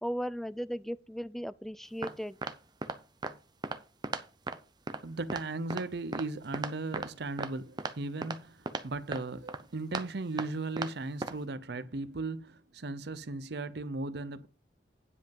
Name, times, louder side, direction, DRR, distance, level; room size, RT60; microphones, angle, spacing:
voice 1, 0.0-2.4, equal, ahead, 0.3 m, -36 dB
sound 1, 2.0-2.1 2.4-2.5 2.8-3.0 3.2-3.3 3.6-3.8 4.0-4.2 4.5-4.6 4.9-5.0 5.3-5.4 5.7-5.8 6.1-6.2 6.5-7.1 7.4-7.5 7.8-7.9 8.2-8.4 8.7-8.8 9.1-9.2 9.5-9.6 9.9-10.0 10.4-10.5 10.8-10.9 11.2-11.3, right 3 dB, 25° right, 0.7 m, -35 dB
voice 2, 5.0-14.5, right 3 dB, 65° right, 0.7 m, -37 dB
9.8 x 5.3 x 5.3 m
head